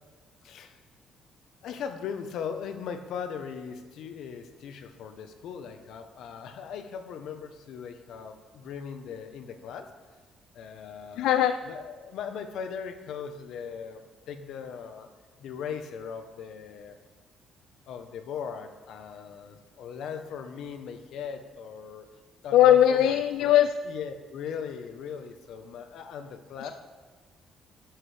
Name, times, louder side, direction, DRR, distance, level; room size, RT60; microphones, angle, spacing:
voice 1, 0.4-0.8 1.6-9.9 10.5-15.1 15.4-17.0 17.9-22.1 22.4-26.7, left 7 dB, 70° left, 7 dB, 1.0 m, -39 dB
voice 2, 11.2-11.5 22.5-23.7, left 11 dB, 90° left, 10 dB, 0.3 m, -19 dB
12.0 x 9.5 x 3.4 m, 1.3 s
cardioid pair, 130°, 0 cm